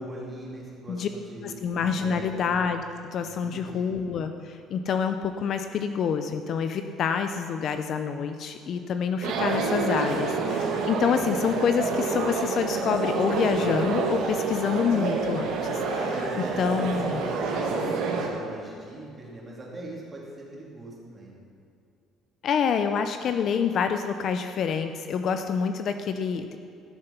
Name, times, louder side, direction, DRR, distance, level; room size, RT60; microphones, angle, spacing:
voice 1, 0.0-2.4 3.2-3.9 16.1-21.4, right 1 dB, 15° right, -4 dB, 2.6 m, -40 dB
voice 2, 1.4-2.8 3.1-16.1 16.6-17.2 22.4-26.6, left 6 dB, 45° left, 8 dB, 0.5 m, -27 dB
sound 1, 9.2-18.3, right 4 dB, 80° right, 1.6 m, -28 dB
14.0 x 6.7 x 5.8 m, 2.5 s
cardioid pair, 155°, 0 cm